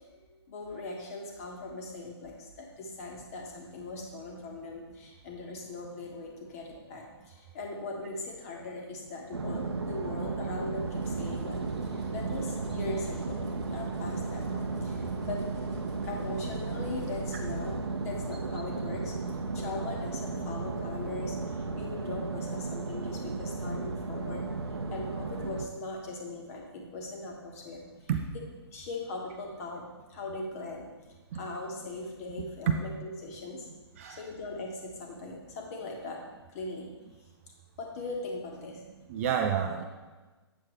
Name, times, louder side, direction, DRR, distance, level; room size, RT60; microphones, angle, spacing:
voice 1, 0.0-15.4 16.0-24.5 24.9-28.4 28.7-29.8 30.1-30.9 31.3-33.7 34.1-36.2 36.5-36.9 37.8-38.8, left 2 dB, 35° left, 0 dB, 1.5 m, -40 dB
sound 1, 9.3-25.7, right 3 dB, 70° right, 0.8 m, -34 dB
sound 2, 10.6-18.6, right 1 dB, ahead, 1.6 m, -47 dB
voice 2, 39.1-39.8, right 8 dB, 30° right, 4 dB, 0.6 m, -28 dB
8.3 x 7.2 x 3.3 m, 1.2 s
figure-of-eight pair, 125°, 14 cm